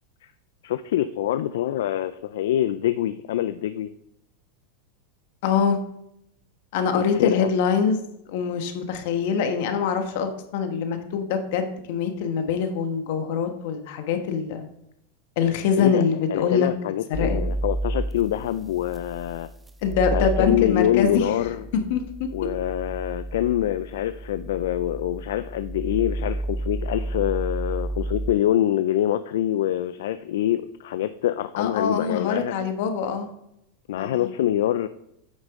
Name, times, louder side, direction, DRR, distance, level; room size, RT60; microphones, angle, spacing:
voice 1, 0.6-3.9 6.9-7.5 15.8-16.0 16.3-19.5 20.1-21.6 22.3-32.5 33.9-34.9, left 12 dB, 80° left, 12 dB, 0.3 m, -25 dB
voice 2, 5.4-5.8 6.7-8.0 8.3-14.7 15.4-16.7 17.1-17.4 19.8-21.5 21.7-22.5 31.6-33.3 34.0-34.3, left 6 dB, 65° left, 6 dB, 1.3 m, -24 dB
sound 1, 17.1-28.3, right 1 dB, 10° right, 0.5 m, -31 dB
9.2 x 6.4 x 3.6 m, 0.79 s
supercardioid pair, 140°, 0 cm